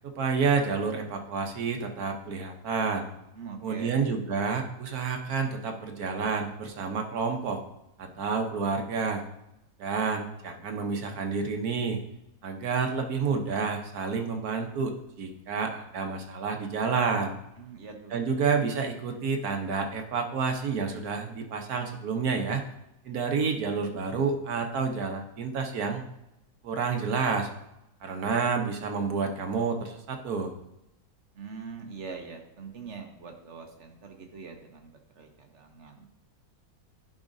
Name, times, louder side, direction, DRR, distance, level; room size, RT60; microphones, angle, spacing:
voice 1, 0.0-3.1 3.6-7.6 8.0-9.2 9.8-12.0 12.4-17.3 18.1-22.6 23.0-26.1 26.6-27.5 28.0-30.5, right 5 dB, 70° right, 4 dB, 1.4 m, -29 dB
voice 2, 3.3-4.1 17.6-18.2 31.3-36.1, right 5 dB, 55° right, 3 dB, 1.1 m, -43 dB
11.0 x 4.9 x 2.6 m, 0.85 s
omnidirectional pair, 1.7 m